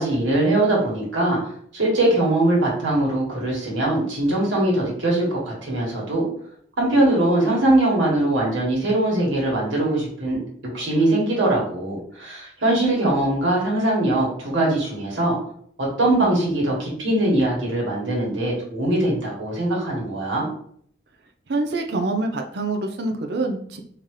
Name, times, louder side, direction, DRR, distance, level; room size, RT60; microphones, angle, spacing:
voice 1, 0.0-1.4 1.7-6.3 6.8-15.4 15.8-20.5, right 1 dB, 85° right, -4 dB, 1.6 m, -21 dB
voice 2, 21.5-23.8, right 2 dB, 55° right, 4 dB, 0.5 m, -25 dB
3.7 x 2.8 x 3.2 m, 0.62 s
head